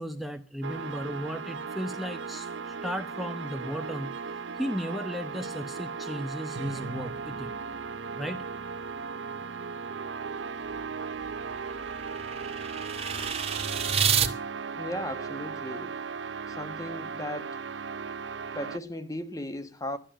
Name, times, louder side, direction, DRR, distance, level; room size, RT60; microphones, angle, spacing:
voice 1, 0.0-7.5 8.2-8.5, equal, ahead, 0.8 m, -35 dB
sound 1, 0.6-18.8, right 5 dB, 80° right, 0.7 m, -37 dB
sound 2, 10.7-14.3, right 7 dB, 35° right, 1.3 m, -30 dB
voice 2, 14.7-15.9 16.5-17.6 18.5-20.0, left 1 dB, 20° left, 1.2 m, -36 dB
13.0 x 10.5 x 7.8 m
head